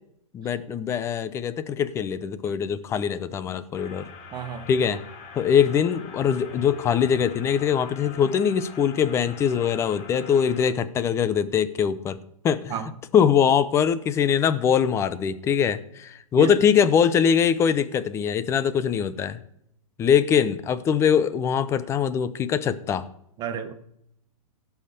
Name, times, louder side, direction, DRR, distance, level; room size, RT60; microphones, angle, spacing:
voice 1, 0.3-4.1 4.7-5.0 5.3-12.2 12.4-12.7 13.1-19.4 20.0-23.1, left 8 dB, 15° left, 14 dB, 0.6 m, -22 dB
sound 1, 3.8-10.7, left 5 dB, 35° left, 1.9 m, -44 dB
voice 2, 4.3-4.7 12.7-12.9 16.4-16.5 23.4-23.7, right 8 dB, 20° right, 7 dB, 1.2 m, -31 dB
16.5 x 5.7 x 6.6 m, 0.74 s
hypercardioid pair, 150°, 19 cm